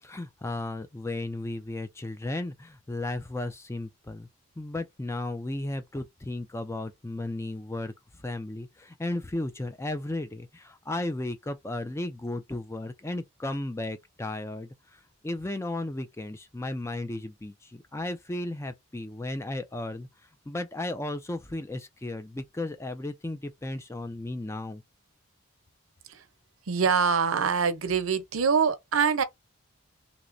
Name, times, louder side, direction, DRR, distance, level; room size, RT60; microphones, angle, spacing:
voice 1, 0.0-4.3 4.6-7.9 8.2-20.1 20.5-24.8, left 2 dB, 15° left, 0.3 m, -34 dB
voice 2, 26.7-29.2, right 6 dB, 75° right, 0.7 m, -24 dB
3.2 x 3.0 x 2.5 m
head